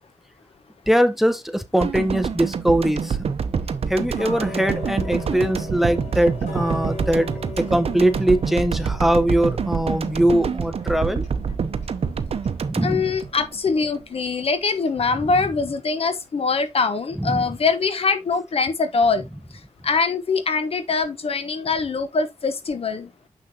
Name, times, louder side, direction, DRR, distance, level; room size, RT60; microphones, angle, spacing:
voice 1, 0.9-3.3 3.9-7.3 7.7-11.2 12.7-13.1 17.2-17.4, right 1 dB, ahead, 0.8 m, -21 dB
sound 1, 1.8-14.0 14.3-14.4, right 6 dB, 60° right, 0.7 m, -27 dB
Tick-tock, 4.2-15.0 15.4-15.5 16.1-16.2 16.6-16.7 17.3-17.4 17.9-18.0 18.5-18.6 19.1-19.2, left 4 dB, 80° left, 4.0 m, -40 dB
voice 2, 12.8-19.3 19.8-23.1, left 4 dB, 55° left, 1.1 m, -23 dB
6.8 x 6.1 x 2.8 m
cardioid pair, 75°, 12 cm